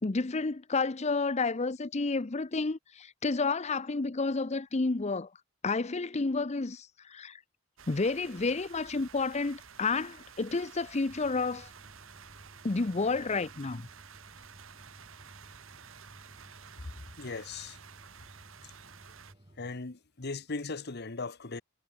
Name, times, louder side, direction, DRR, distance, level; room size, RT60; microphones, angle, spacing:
voice 1, 0.0-5.3 5.6-7.4 7.9-11.7 12.6-13.9, left 3 dB, 30° left, 0.7 m, -30 dB
sound 1, 7.8-19.3, right 7 dB, 70° right, 1.7 m, -52 dB
sound 2, 11.1-19.8, right 1 dB, 25° right, 1.4 m, -57 dB
voice 2, 17.2-17.8 19.6-21.6, left 3 dB, 50° left, 1.2 m, -38 dB
head